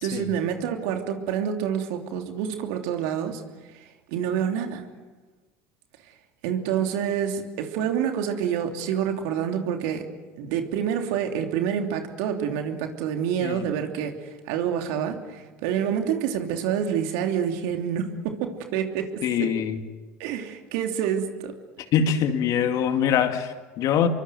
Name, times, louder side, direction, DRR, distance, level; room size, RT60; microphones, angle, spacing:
voice 1, 0.0-3.4 4.1-4.8 6.4-10.1 10.4-19.5 20.2-21.5, right 8 dB, 70° right, 4 dB, 3.1 m, -27 dB
voice 2, 19.2-19.8 21.9-24.1, left 8 dB, 55° left, 7 dB, 2.4 m, -23 dB
27.0 x 23.5 x 7.8 m, 1.3 s
hypercardioid pair, 75°, 7 cm